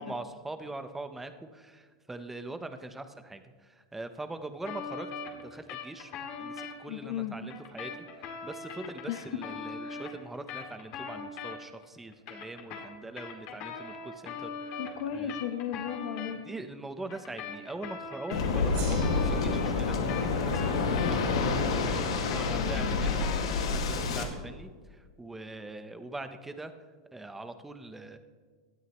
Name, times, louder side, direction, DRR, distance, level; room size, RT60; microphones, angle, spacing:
voice 1, 0.0-3.4 3.9-14.8 15.1-15.3 16.4-20.0 20.3-21.2 21.6-23.2 23.6-26.7 27.1-28.2, right 2 dB, 10° right, 9 dB, 0.9 m, -42 dB
sound 1, 4.6-6.7 7.5-11.8 12.1-16.3 17.1-21.4 21.7-23.8, left 5 dB, 50° left, 2.4 m, -41 dB
voice 2, 6.9-7.4 9.1-9.4 9.8-10.0 14.8-16.4 22.4-23.1, left 9 dB, 70° left, 6 dB, 1.1 m, -35 dB
Waves surf, 18.3-24.2, left 4 dB, 85° left, 2.1 m, -28 dB
Gong, 18.7-23.5, right 7 dB, 60° right, 4.6 m, -50 dB
18.5 x 12.5 x 3.1 m, 1.5 s
supercardioid pair, 125°, 3 cm